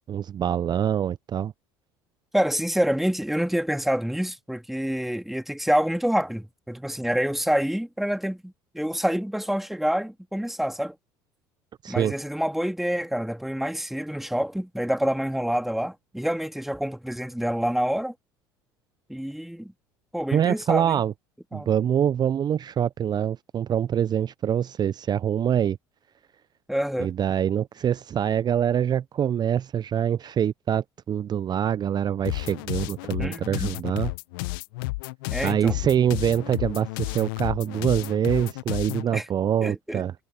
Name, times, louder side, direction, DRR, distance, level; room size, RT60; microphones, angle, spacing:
voice 1, 0.1-1.5 11.8-12.1 20.3-21.1 21.5-25.8 27.0-34.1 35.4-40.1, right 9 dB, 35° right, 0.8 m, -25 dB
voice 2, 2.3-10.9 11.9-18.1 19.1-19.7 20.1-21.0 21.5-21.7 26.7-27.1 33.2-33.7 35.3-35.7 39.1-39.3 39.6-40.0, equal, ahead, 2.6 m, -27 dB
sound 1, 32.2-39.1, left 23 dB, 70° left, 1.0 m, -32 dB
hypercardioid pair, 70°, 12 cm